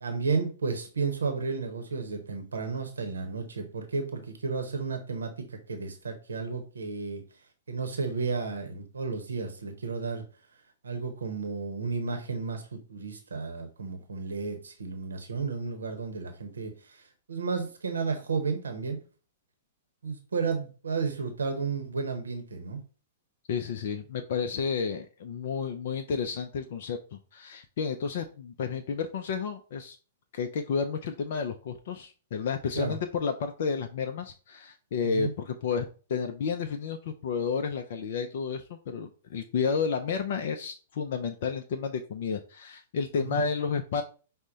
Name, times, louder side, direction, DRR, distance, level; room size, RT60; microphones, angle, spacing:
voice 1, 0.0-7.2 7.7-10.2 10.8-17.0 17.3-19.0 20.0-22.8 32.7-33.0 35.0-35.3 43.3-43.4, right 4 dB, 75° right, 5 dB, 0.7 m, -32 dB
voice 2, 23.5-30.0 30.3-44.0, left 6 dB, 55° left, 5 dB, 0.4 m, -31 dB
5.3 x 2.1 x 3.8 m, 0.36 s
figure-of-eight pair, 105°, 0 cm